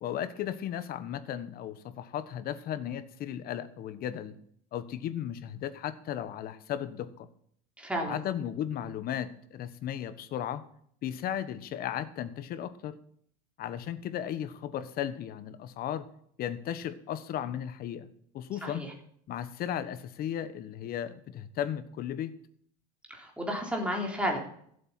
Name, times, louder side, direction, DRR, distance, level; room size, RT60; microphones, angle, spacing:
voice 1, 0.0-4.4 4.7-7.3 8.0-10.6 11.0-12.9 13.6-16.1 16.4-18.9 19.3-22.3, left 10 dB, 50° left, 12 dB, 1.2 m, -35 dB
voice 2, 7.8-8.2 18.6-18.9 23.1-24.4, equal, 5° right, 0 dB, 3.6 m, -32 dB
15.0 x 8.0 x 5.8 m, 0.65 s
supercardioid pair, 115°, 20 cm